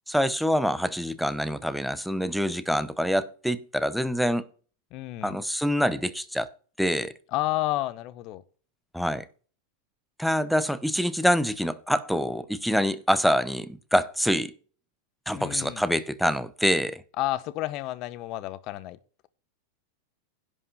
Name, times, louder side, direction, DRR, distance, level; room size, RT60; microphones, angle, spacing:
voice 1, 0.1-4.4 5.2-6.5 6.8-7.1 8.9-9.3 10.2-14.5 15.3-17.0, equal, ahead, 0.8 m, -25 dB
voice 2, 4.9-5.4 7.3-8.4 15.4-15.8 17.2-19.0, left 16 dB, 40° left, 1.0 m, -30 dB
11.0 x 5.3 x 8.4 m
supercardioid pair, 145°, 0 cm